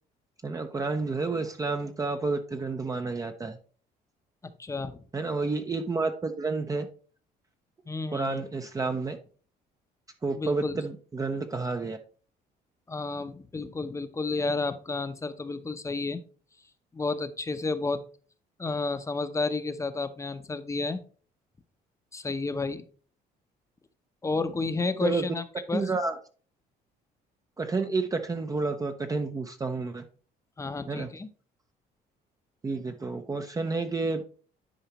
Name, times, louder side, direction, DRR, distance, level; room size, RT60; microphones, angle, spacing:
voice 1, 0.4-3.6 5.1-6.9 8.1-9.2 10.2-12.0 25.0-25.3 25.7-26.2 27.6-30.0 30.9-31.1 32.6-34.2, right 3 dB, 20° right, 6 dB, 0.6 m, -30 dB
voice 2, 4.4-5.0 7.9-8.4 10.3-10.8 12.9-16.2 16.9-18.0 18.6-21.0 22.1-22.8 24.2-25.9 30.6-31.3, left 3 dB, 15° left, 11 dB, 0.7 m, -31 dB
10.0 x 4.7 x 3.0 m, 0.41 s
cardioid pair, 110°, 17 cm